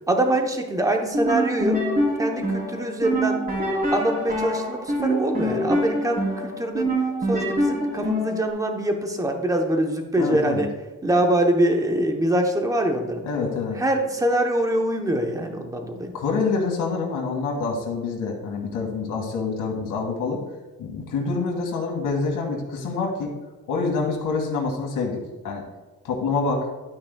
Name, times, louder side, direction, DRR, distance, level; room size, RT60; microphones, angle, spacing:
voice 1, 0.1-1.9 2.2-3.5 3.9-6.9 7.3-10.7 11.0-13.2 13.7-16.1, right 1 dB, 10° right, 3 dB, 0.9 m, -24 dB
sound 1, 1.0-8.5, equal, 30° right, 2.9 m, -25 dB
voice 2, 10.2-10.7 13.2-13.8 16.1-20.4 20.8-23.3 23.7-25.6 26.0-26.7, left 4 dB, 85° left, -1 dB, 2.0 m, -26 dB
12.0 x 9.2 x 2.3 m, 1.2 s
cardioid pair, 180°, 31 cm